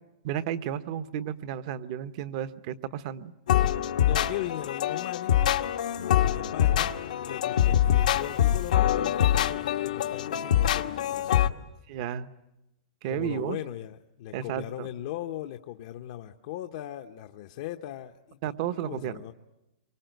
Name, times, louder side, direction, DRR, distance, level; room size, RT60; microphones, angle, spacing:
voice 1, 0.2-3.3 11.5-11.6 11.9-12.3 13.0-13.6 14.3-14.9 18.4-19.2, right 10 dB, 45° right, 12 dB, 1.1 m, -33 dB
sound 1, 3.5-11.5, left 11 dB, 75° left, 1.2 m, -24 dB
voice 2, 4.0-5.4 6.2-6.9 7.2-11.5 13.1-18.4 18.8-19.3, left 13 dB, 50° left, 6 dB, 0.9 m, -38 dB
26.0 x 24.0 x 9.2 m, 0.96 s
hypercardioid pair, 150°, 4 cm